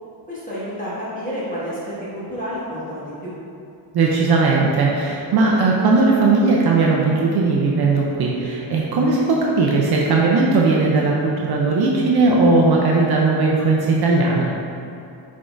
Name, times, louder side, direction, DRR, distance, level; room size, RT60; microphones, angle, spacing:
voice 1, 0.3-3.3, equal, 15° left, -10 dB, 1.1 m, -30 dB
voice 2, 3.9-14.5, right 3 dB, 55° right, -3 dB, 0.6 m, -18 dB
5.6 x 3.7 x 2.5 m, 2.6 s
cardioid pair, 135°, 48 cm